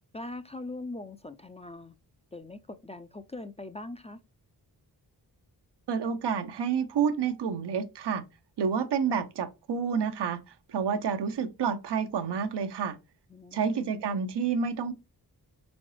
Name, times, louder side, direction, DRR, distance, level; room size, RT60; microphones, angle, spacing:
voice 1, 0.1-1.9 2.3-4.2 13.3-13.8, left 2 dB, 15° left, 0.4 m, -41 dB
voice 2, 5.9-8.2 8.6-10.4 10.7-13.0 13.5-14.9, right 6 dB, 85° right, 0.7 m, -29 dB
4.1 x 3.8 x 3.1 m
wide cardioid pair, 90°, 40 cm